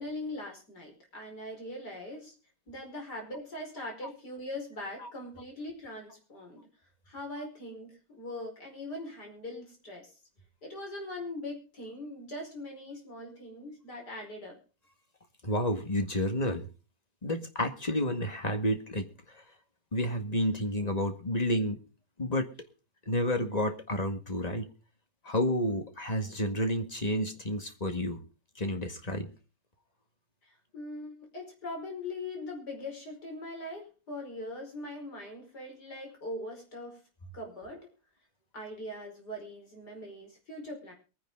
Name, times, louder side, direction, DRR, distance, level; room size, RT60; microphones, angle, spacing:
voice 1, 0.0-2.3 2.7-6.7 7.1-10.1 10.6-14.6 30.4-37.0 37.3-37.9 38.5-40.9, left 1 dB, 75° left, 2 dB, 5.6 m, -41 dB
voice 2, 15.4-16.7 17.2-19.4 19.9-21.8 22.2-22.5 23.1-24.7 25.2-28.2 28.6-29.3, left 1 dB, 25° left, 6 dB, 1.8 m, -30 dB
22.5 x 9.9 x 3.8 m, 0.35 s
omnidirectional pair, 1.8 m